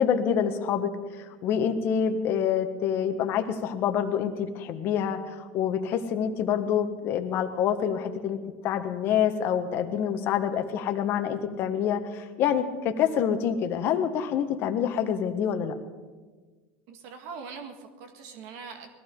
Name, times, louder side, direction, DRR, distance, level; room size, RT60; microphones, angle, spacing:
voice 1, 0.0-15.8, left 8 dB, 50° left, 8 dB, 1.5 m, -27 dB
voice 2, 16.9-19.0, right 5 dB, 60° right, 6 dB, 1.7 m, -42 dB
20.0 x 15.5 x 3.9 m, 1.4 s
supercardioid pair, 110°, 5 cm